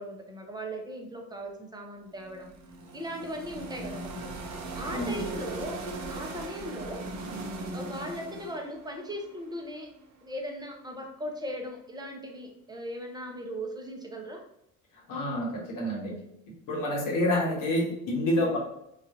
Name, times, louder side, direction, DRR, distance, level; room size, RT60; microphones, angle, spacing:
voice 1, 0.0-2.5 2.9-4.4 4.7-5.8 6.1-7.0 7.7-9.9 10.2-14.4, equal, 10° right, 1 dB, 0.8 m, -38 dB
sound 1, 2.1-10.1, right 2 dB, 40° right, 0.8 m, -39 dB
voice 2, 4.9-5.3 15.1-16.2 16.7-18.6, left 1 dB, 50° left, -2 dB, 1.3 m, -28 dB
4.0 x 2.4 x 2.7 m, 0.80 s
hypercardioid pair, 60°, 41 cm